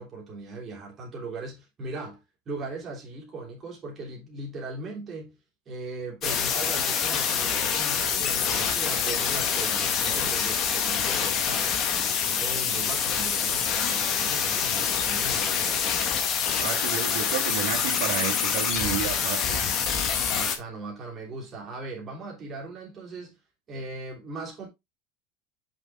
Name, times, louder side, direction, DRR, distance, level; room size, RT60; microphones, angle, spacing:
voice 1, 0.0-5.4 5.6-11.8 12.2-15.8 20.3-23.4 23.7-24.7, right 3 dB, 25° right, 3.2 m, -38 dB
sound 1, 6.2-20.6, left 7 dB, 35° left, 1.5 m, -26 dB
voice 2, 16.6-19.7, right 8 dB, 75° right, 2.6 m, -31 dB
6.1 x 5.4 x 3.6 m
supercardioid pair, 155°, 0 cm